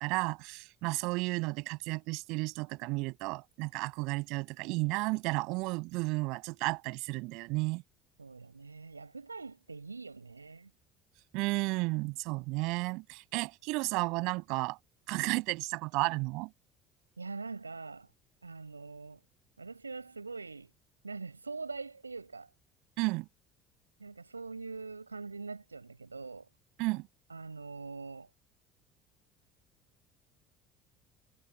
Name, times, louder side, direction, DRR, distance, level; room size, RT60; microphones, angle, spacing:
voice 1, 0.0-7.8 11.3-14.8 15.1-16.5 23.0-23.3 26.8-27.1, right 25 dB, 60° right, 6.9 m, -33 dB
voice 2, 8.2-10.7 17.2-18.1 18.4-19.2 19.6-20.7 21.0-22.5 24.0-26.5 27.3-28.3, right 4 dB, 85° right, 7.9 m, -43 dB
figure-of-eight pair, 60°, 0 cm